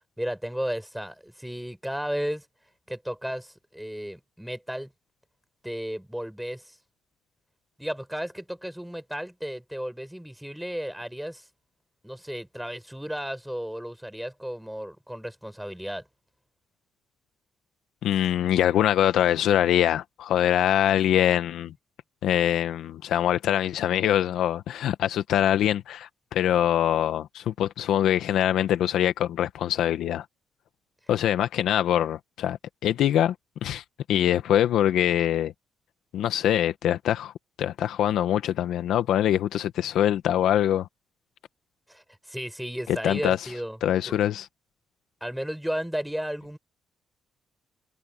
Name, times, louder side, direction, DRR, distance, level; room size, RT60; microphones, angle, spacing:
voice 1, 0.2-2.5 2.9-4.9 5.6-6.8 7.8-11.4 12.0-16.0 41.9-43.8 44.1-44.2 45.2-46.6, equal, 5° right, 7.1 m, -34 dB
voice 2, 18.0-21.7 22.2-30.2 31.1-33.3 33.6-35.5 36.1-37.3 37.6-40.9 42.9-43.4 43.8-44.5, left 11 dB, 80° left, 1.4 m, -24 dB
cardioid pair, 95°, 0 cm